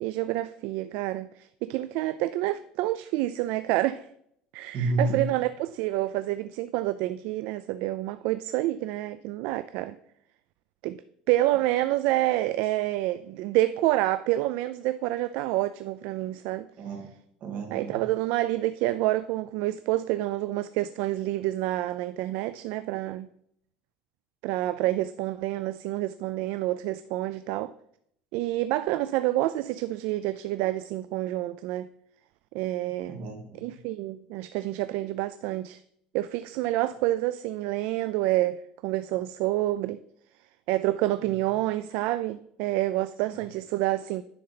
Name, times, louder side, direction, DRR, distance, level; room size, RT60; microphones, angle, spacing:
voice 1, 0.0-4.1 4.5-10.0 10.8-11.0 11.3-16.7 17.7-23.3 24.4-27.7 28.3-31.9 32.5-33.2 33.6-35.8 36.1-40.0 40.7-44.2, right 16 dB, 65° right, 0.3 m, -28 dB
voice 2, 4.7-5.2 16.8-17.1 17.4-18.0 33.1-33.6 43.3-43.4, right 2 dB, 45° right, 2.2 m, -30 dB
9.8 x 3.9 x 5.8 m
cardioid pair, 155°, 3 cm